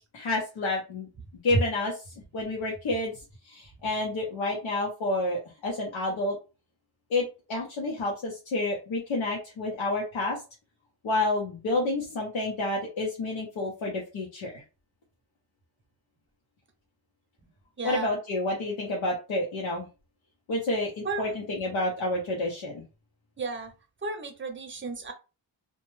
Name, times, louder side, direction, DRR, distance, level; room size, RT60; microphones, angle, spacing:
voice 1, 0.1-1.1 1.4-3.1 3.4-6.4 7.1-10.4 11.0-14.6 17.8-19.9 20.5-22.8, left 2 dB, 85° left, -2 dB, 0.8 m, -29 dB
voice 2, 17.8-18.1 21.0-21.3 23.4-23.7 24.0-25.1, right 4 dB, 25° right, 5 dB, 0.6 m, -34 dB
2.2 x 2.1 x 3.1 m, 0.30 s
wide cardioid pair, 95°, 45 cm